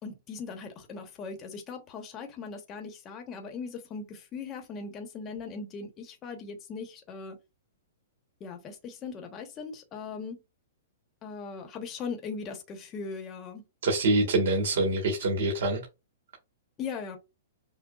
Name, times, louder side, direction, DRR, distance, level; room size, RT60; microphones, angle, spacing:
voice 1, 0.0-7.4 8.4-10.4 11.2-13.6 16.8-17.2, left 5 dB, 25° left, 1.0 m, -39 dB
voice 2, 13.8-15.8, right 2 dB, 65° right, 1.5 m, -25 dB
6.1 x 2.2 x 2.4 m
hypercardioid pair, 140°, 0 cm